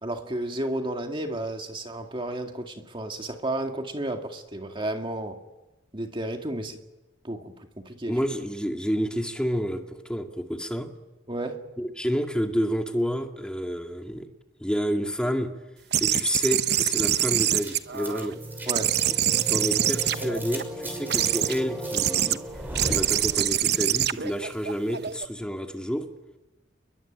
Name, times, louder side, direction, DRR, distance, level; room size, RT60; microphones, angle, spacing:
voice 1, 0.0-5.4 5.9-6.8 7.2-8.2 11.3-11.7 18.7-19.0, right 1 dB, 25° right, 2.1 m, -32 dB
voice 2, 8.1-10.9 11.8-14.3 14.6-15.5 16.0-18.4 19.5-26.1, equal, 5° left, 2.3 m, -29 dB
sound 1, 15.9-18.3 18.7-20.6 21.1-21.5 21.9-22.4 22.7-25.2, right 11 dB, 60° right, 0.9 m, -25 dB
sound 2, 17.4-23.8, right 1 dB, 10° right, 6.1 m, -36 dB
29.5 x 22.0 x 8.9 m
head